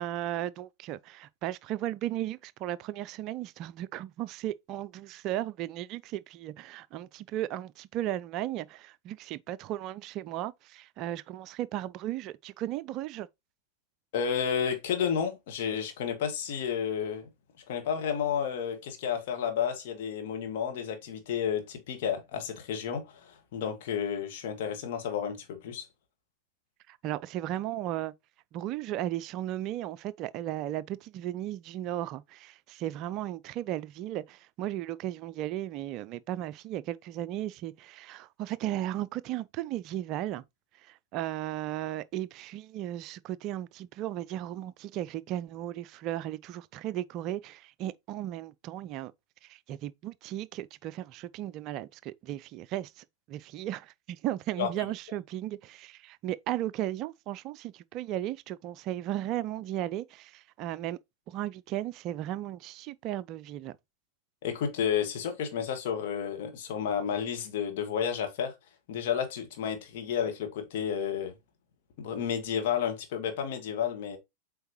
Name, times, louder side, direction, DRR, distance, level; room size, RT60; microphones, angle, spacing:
voice 1, 0.0-13.3 26.9-28.1 28.5-40.4 40.7-49.1 49.4-61.0 61.3-63.8, right 13 dB, 40° right, 0.3 m, -35 dB
voice 2, 14.1-17.3 17.7-25.9 54.6-54.7 64.4-68.5 68.9-71.3 72.0-74.2, left 8 dB, 50° left, 1.9 m, -31 dB
7.9 x 4.6 x 3.0 m
figure-of-eight pair, 90°, 0 cm